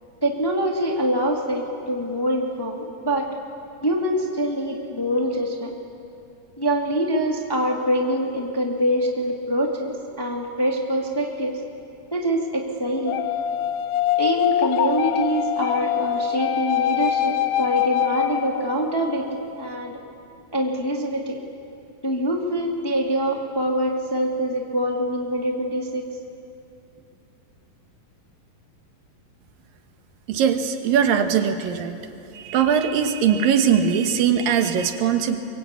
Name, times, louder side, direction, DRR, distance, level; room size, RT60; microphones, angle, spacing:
voice 1, 0.2-3.3 3.8-5.7 6.6-9.9 10.2-11.6 12.1-13.2 14.2-20.0 20.5-21.4 22.0-26.1, equal, 10° left, 0 dB, 1.4 m, -24 dB
sound 1, 13.1-19.0, left 11 dB, 85° left, 1.6 m, -24 dB
voice 2, 30.3-32.0 32.3-35.4, right 7 dB, 80° right, 6 dB, 3.0 m, -20 dB
24.0 x 23.5 x 8.4 m, 2.6 s
omnidirectional pair, 4.0 m